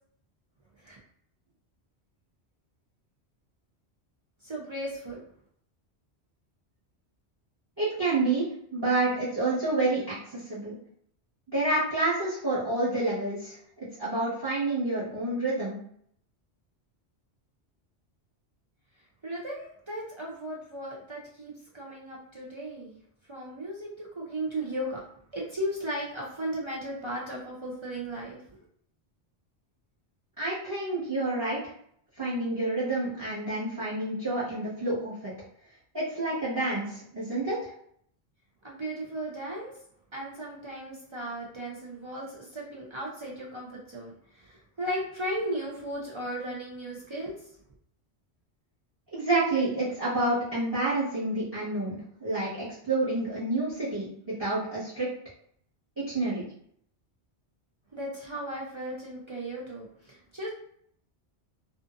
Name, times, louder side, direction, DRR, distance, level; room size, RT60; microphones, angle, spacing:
voice 1, 4.4-5.2 19.2-23.0 23.3-25.0 25.3-28.4 38.6-39.7 40.1-47.5 57.9-60.5, right 1 dB, 40° right, -4 dB, 0.4 m, -36 dB
voice 2, 7.8-8.4 8.7-10.7 11.5-15.8 30.4-31.6 32.2-35.3 35.9-37.7 49.1-55.1 56.1-56.4, right 2 dB, 20° right, -9 dB, 1.1 m, -29 dB
2.5 x 2.4 x 2.5 m, 0.67 s
omnidirectional pair, 1.1 m